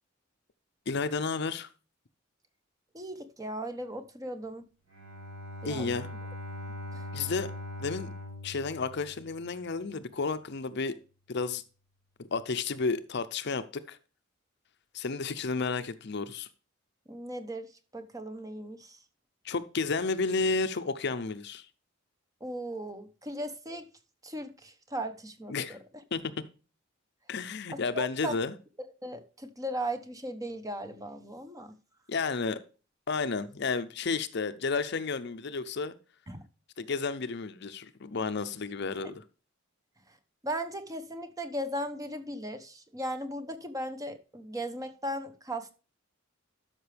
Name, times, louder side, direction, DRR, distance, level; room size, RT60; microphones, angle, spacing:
voice 1, 0.9-1.7 5.6-6.1 7.1-7.5 7.8-8.1 8.4-11.0 11.3-11.6 12.2-14.0 14.9-16.5 19.4-21.7 25.5-25.8 26.1-26.4 27.3-28.6 32.1-32.6 33.1-35.9 36.8-39.2, left 4 dB, 55° left, 0.7 m, -32 dB
voice 2, 2.9-4.6 5.6-5.9 6.9-7.1 17.1-19.0 22.4-23.9 24.2-25.8 27.7-28.4 29.0-31.8 36.3-36.4 39.0-39.1 40.1-40.2 40.4-45.7, right 1 dB, 15° right, 1.0 m, -37 dB
Bowed string instrument, 4.9-9.7, left 1 dB, 60° right, 5.7 m, -41 dB
12.5 x 5.9 x 3.4 m
head